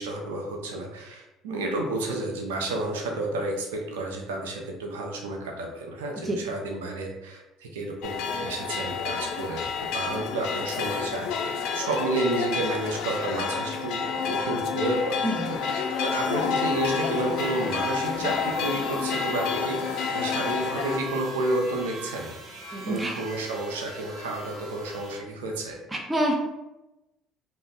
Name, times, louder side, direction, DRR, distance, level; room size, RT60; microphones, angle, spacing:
voice 1, 0.0-9.6 9.9-14.0 14.3-22.3 22.9-25.8, right 2 dB, 90° right, 1 dB, 0.4 m, -31 dB
sound 1, 8.0-21.0, left 5 dB, 70° left, 0.3 m, -29 dB
sound 2, 15.6-25.2, right 1 dB, 45° right, 1.0 m, -41 dB
voice 2, 22.7-23.2 25.9-26.3, right 1 dB, 15° right, 0 dB, 0.5 m, -27 dB
2.4 x 2.0 x 3.6 m, 0.97 s
hypercardioid pair, 70°, 0 cm